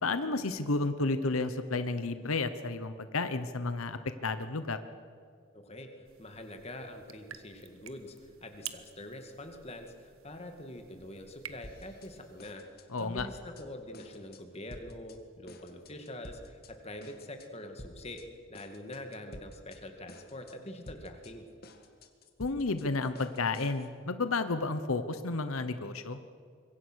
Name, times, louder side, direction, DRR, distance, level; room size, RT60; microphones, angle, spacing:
voice 1, 0.0-4.8 12.9-13.3 22.4-26.2, left 3 dB, 85° left, 11 dB, 1.0 m, -32 dB
voice 2, 5.5-18.2 18.5-21.5, left 1 dB, 30° left, 5 dB, 2.2 m, -45 dB
sound 1, 6.0-12.6, right 10 dB, 80° right, 1.3 m, -50 dB
sound 2, 11.6-12.1 12.4-13.6 13.9-14.4 14.7-15.2 15.5-16.7 17.0-17.5 17.8-18.3 18.5-19.8 20.1-20.6 20.9-23.9, left 1 dB, 45° left, 1.9 m, -50 dB
26.0 x 22.5 x 6.4 m, 2.2 s
head